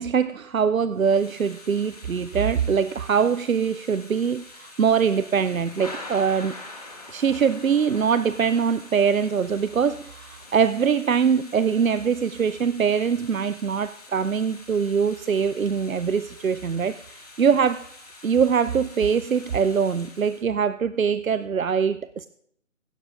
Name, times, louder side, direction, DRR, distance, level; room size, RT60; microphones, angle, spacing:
voice 1, 0.0-6.6 7.1-17.9 18.2-22.3, right 6 dB, 90° right, 15 dB, 0.5 m, -23 dB
Thunder / Rain, 0.9-20.4, left 2 dB, 30° left, 1.8 m, -45 dB
16.5 x 15.5 x 2.4 m, 0.69 s
figure-of-eight pair, 155°, 40 cm